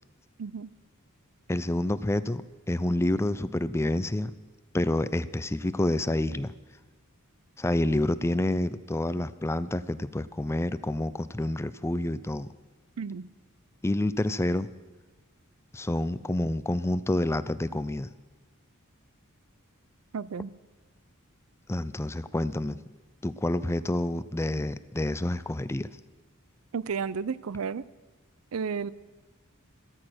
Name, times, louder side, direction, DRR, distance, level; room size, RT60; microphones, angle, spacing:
voice 1, 0.4-0.7 13.0-13.3 20.1-20.5 26.7-27.9 28.5-28.9, right 6 dB, 80° right, 19 dB, 0.5 m, -32 dB
voice 2, 1.5-4.3 4.7-6.5 7.6-12.5 13.8-14.7 15.7-18.1 21.7-22.8 23.2-25.9, left 1 dB, 10° left, 14 dB, 0.4 m, -28 dB
14.5 x 13.5 x 6.2 m, 1.2 s
head